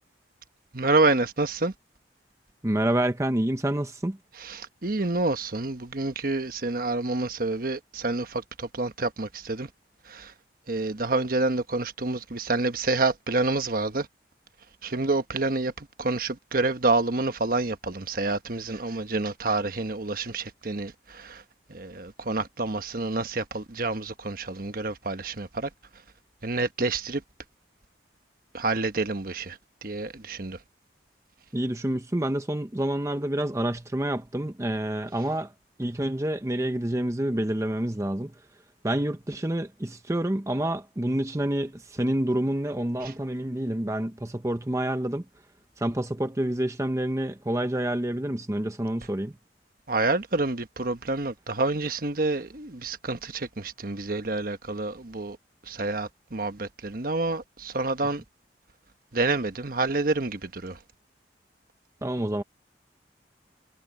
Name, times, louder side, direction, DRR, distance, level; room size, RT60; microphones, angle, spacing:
voice 1, 0.7-1.7 4.4-9.7 10.1-10.3 10.7-14.1 14.8-21.4 21.7-25.7 26.4-27.2 28.5-30.6 43.0-43.1 49.9-55.4 55.7-58.2 59.1-60.8, right 3 dB, 50° right, 1.2 m, -28 dB
voice 2, 2.6-4.2 31.5-35.5 35.8-38.3 38.8-45.2 45.8-49.3 62.0-62.4, right 1 dB, 15° right, 0.7 m, -28 dB
head